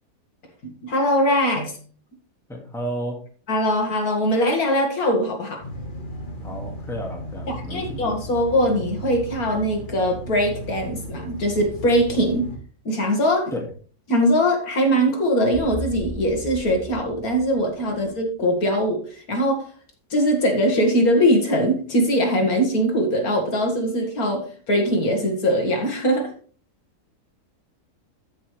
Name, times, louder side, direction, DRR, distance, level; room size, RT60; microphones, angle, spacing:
voice 1, 0.6-1.8 3.5-5.6 7.5-12.5 12.9-13.5 14.1-19.7 20.1-26.3, equal, 65° left, 2 dB, 2.3 m, -21 dB
voice 2, 2.5-3.2 6.4-8.0 13.5-13.7, equal, ahead, 0 dB, 1.8 m, -32 dB
sound 1, 5.6-12.6, equal, 35° left, 1.4 m, -35 dB
sound 2, 15.5-18.1, left 1 dB, 20° right, 3.4 m, -36 dB
13.5 x 5.7 x 3.3 m, 0.42 s
omnidirectional pair, 1.7 m